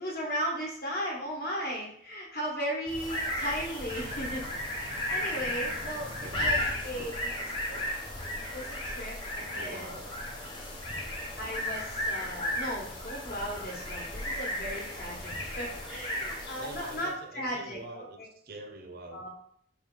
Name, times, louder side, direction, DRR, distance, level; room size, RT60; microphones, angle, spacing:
voice 1, 0.0-7.3 7.7-7.8 8.5-10.0 11.4-18.3 19.1-19.3, equal, 55° left, -2 dB, 1.1 m, -36 dB
sound 1, 2.9-17.2, left 1 dB, 25° left, 0.9 m, -35 dB
voice 2, 6.2-6.6 6.9-7.1 7.4-7.9 9.5-10.1 16.6-19.3, right 2 dB, 55° right, 6 dB, 0.5 m, -46 dB
4.4 x 2.3 x 3.6 m, 0.66 s
head